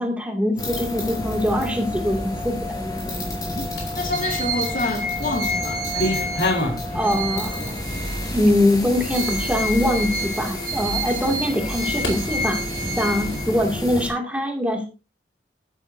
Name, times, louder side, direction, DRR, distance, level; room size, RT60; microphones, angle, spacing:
voice 1, 0.0-2.7 6.9-7.6 8.3-12.6 13.0-14.9, left 1 dB, 10° right, 2.5 m, -23 dB
sound 1, 0.6-14.1, left 1 dB, 20° left, 5.1 m, -30 dB
sound 2, 3.8-4.2 4.8-5.4 5.6-6.9 7.3-7.8 8.4-8.5 9.1-9.2 9.8-9.9 12.0-12.2, left 1 dB, 80° left, 4.5 m, -26 dB
voice 2, 4.0-6.4 6.9-7.5, left 2 dB, 50° left, 2.6 m, -29 dB
sound 3, 4.1-8.5 8.9-13.8, equal, 55° right, 2.4 m, -30 dB
13.5 x 12.0 x 2.7 m
head